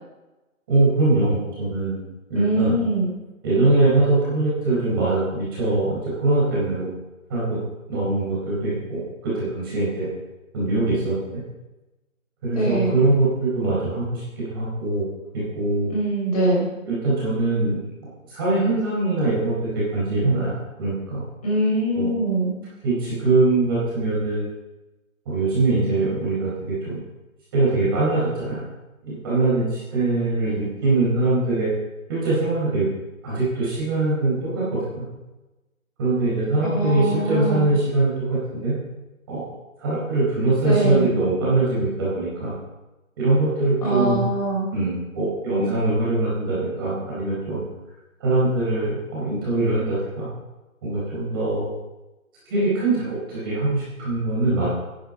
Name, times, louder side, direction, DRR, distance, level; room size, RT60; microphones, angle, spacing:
voice 1, 0.7-2.0 2.3-2.8 3.4-6.9 7.3-7.6 7.9-10.1 10.5-11.2 12.4-15.0 15.3-15.9 16.9-17.8 18.3-20.5 20.8-21.2 21.9-22.1 22.8-24.5 25.3-27.0 27.5-28.7 29.0-31.7 32.1-32.9 33.2-35.0 36.0-38.1 38.5-38.7 39.3-39.4 39.8-42.5 43.2-44.2 44.7-47.6 48.2-50.3 50.8-51.7 52.5-54.7, right 2 dB, 15° right, -8 dB, 4.3 m, -22 dB
voice 2, 2.3-3.1 12.5-12.9 15.9-16.7 21.4-22.6 36.6-37.7 40.6-41.1 43.8-44.7, right 1 dB, 30° left, -5 dB, 4.3 m, -23 dB
13.0 x 10.5 x 4.9 m, 1.1 s
hypercardioid pair, 170°, 41 cm